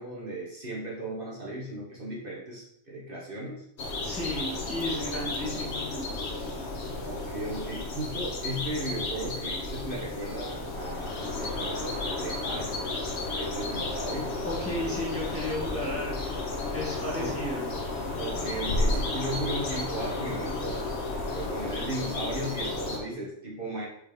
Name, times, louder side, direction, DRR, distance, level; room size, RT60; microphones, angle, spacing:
voice 1, 0.0-3.6 5.2-5.6 7.0-12.8 13.2-14.4 17.1-17.3 18.2-20.8 21.2-23.9, right 1 dB, 45° right, -5 dB, 1.5 m, -36 dB
sound 1, 3.8-23.0, left 2 dB, 65° left, 1.3 m, -32 dB
voice 2, 4.0-6.2 14.4-16.4 16.7-17.7, left 1 dB, 10° left, -7 dB, 2.0 m, -34 dB
4.9 x 4.3 x 5.2 m, 0.75 s
omnidirectional pair, 1.3 m